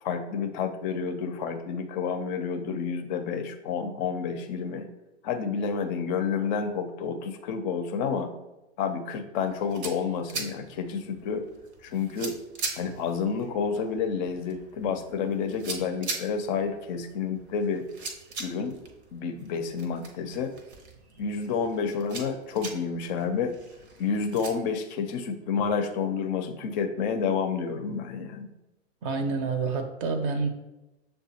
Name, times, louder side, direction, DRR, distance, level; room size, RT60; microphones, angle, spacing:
voice 1, 0.0-4.9 5.2-8.3 8.8-11.5 11.8-12.4 12.8-17.8 18.4-18.8 19.1-20.5 21.2-23.6 24.0-28.5, left 6 dB, 40° left, 6 dB, 0.5 m, -29 dB
sound 1, 9.4-24.5, right 3 dB, 75° right, 0.8 m, -42 dB
voice 2, 29.0-30.5, right 4 dB, 35° right, 7 dB, 0.5 m, -28 dB
6.6 x 2.2 x 2.8 m, 0.98 s
figure-of-eight pair, 90°, 34 cm